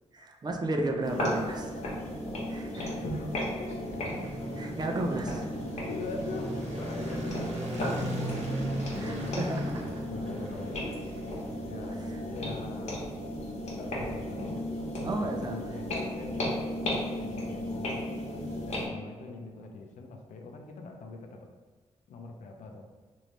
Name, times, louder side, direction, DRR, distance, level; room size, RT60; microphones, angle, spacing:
voice 1, 0.1-1.7 2.5-3.0 4.5-5.5 9.0-9.9 11.9-12.2 15.0-15.8 18.1-18.7, right 2 dB, 35° right, 3 dB, 0.4 m, -34 dB
voice 2, 0.7-1.5 2.9-4.0 5.5-9.4 10.1-11.0 11.6-13.2 13.7-18.1 18.6-21.5 22.1-22.9, left 3 dB, 90° left, 3 dB, 0.4 m, -43 dB
sound 1, 1.0-18.9, left 1 dB, 70° left, 1.0 m, -35 dB
sound 2, 3.6-11.9, right 1 dB, 65° right, 1.1 m, -38 dB
3.0 x 2.6 x 3.1 m, 1.5 s
cardioid pair, 95°, 12 cm